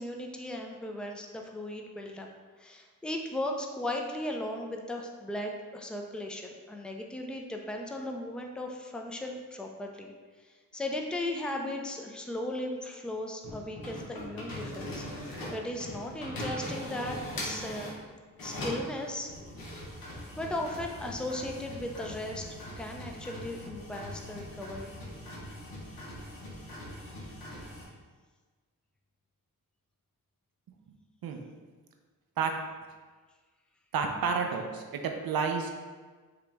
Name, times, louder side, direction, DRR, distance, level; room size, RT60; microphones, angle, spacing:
voice 1, 0.0-2.3 2.6-10.1 10.4-10.5 10.7-15.0 15.5-17.9 18.4-19.3 20.4-22.5 22.8-24.9, left 1 dB, 5° left, 1 dB, 0.5 m, -36 dB
sound 1, 13.4-18.0 18.4-27.9, equal, 80° left, 1.2 m, -41 dB
voice 2, 33.9-35.7, right 5 dB, 80° right, 4 dB, 0.6 m, -30 dB
5.1 x 2.9 x 3.5 m, 1.4 s
cardioid pair, 65°, 35 cm